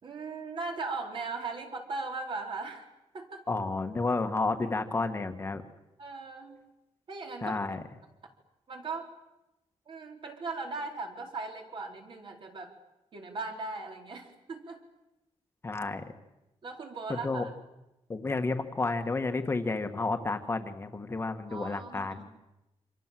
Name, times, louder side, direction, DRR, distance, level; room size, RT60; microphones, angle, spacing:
voice 1, 0.0-2.9 3.1-3.4 6.0-6.6 7.1-7.6 8.7-9.1 9.9-12.7 13.1-14.8 16.6-17.5 21.5-22.3, right 3 dB, 50° right, 2 dB, 4.5 m, -38 dB
voice 2, 3.5-5.6 7.4-7.8 15.6-16.1 17.1-17.5 18.1-22.3, left 3 dB, 20° left, 6 dB, 1.6 m, -31 dB
28.0 x 27.0 x 7.7 m, 0.95 s
wide cardioid pair, 170°, 11 cm